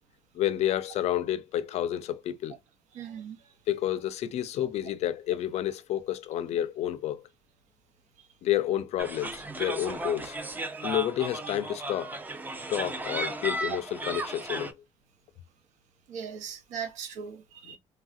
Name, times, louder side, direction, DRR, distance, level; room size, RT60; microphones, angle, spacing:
voice 1, 0.3-2.6 3.7-7.2 8.4-10.4 10.8-12.1 12.7-14.7 17.6-17.8, left 12 dB, 65° left, 0.4 m, -30 dB
voice 2, 2.9-3.4 16.1-17.8, right 7 dB, 85° right, 0.7 m, -39 dB
sound 1, 9.0-14.7, right 2 dB, 15° right, 0.5 m, -35 dB
3.2 x 2.4 x 2.5 m
cardioid pair, 145°, 12 cm